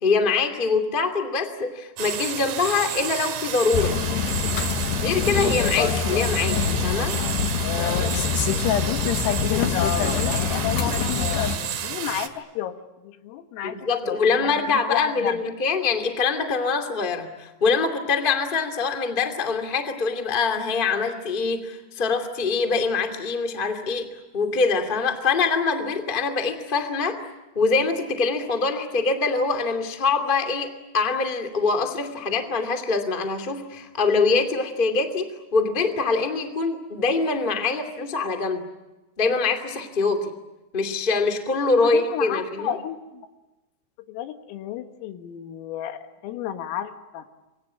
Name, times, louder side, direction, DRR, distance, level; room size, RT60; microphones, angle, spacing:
voice 1, 0.0-4.0 5.0-7.1 13.6-24.1 24.3-27.2 27.5-38.6 39.2-40.3 40.7-42.7, left 4 dB, 25° left, 5 dB, 1.0 m, -24 dB
sound 1, 2.0-12.3, right 8 dB, 55° right, 3.2 m, -31 dB
sound 2, 3.7-11.6, left 7 dB, 65° left, 3.2 m, -24 dB
voice 2, 9.5-12.8 13.0-15.4 41.8-43.3 44.1-47.3, left 10 dB, 90° left, 7 dB, 4.3 m, -32 dB
29.0 x 23.0 x 8.8 m, 1.1 s
omnidirectional pair, 5.8 m